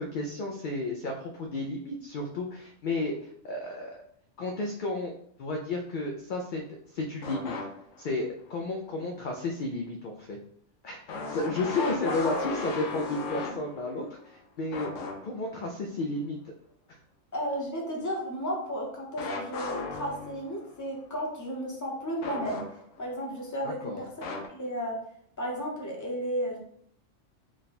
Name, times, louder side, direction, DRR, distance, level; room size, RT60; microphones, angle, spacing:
voice 1, 0.0-4.0 4.4-5.1 5.4-6.6 6.9-7.5 8.0-10.4 10.8-14.9 15.2-16.5 23.6-24.0, left 2 dB, 65° left, 1 dB, 0.5 m, -33 dB
sound 1, 7.2-8.1 8.5-8.6 11.1-14.3 14.7-15.5 19.2-20.7 22.2-23.1 24.2-24.5, left 3 dB, 80° left, 1.0 m, -36 dB
voice 2, 17.3-22.6 23.0-24.0 24.5-24.9 25.4-26.6, equal, 15° left, -2 dB, 0.7 m, -33 dB
3.6 x 2.2 x 3.9 m, 0.67 s
omnidirectional pair, 1.3 m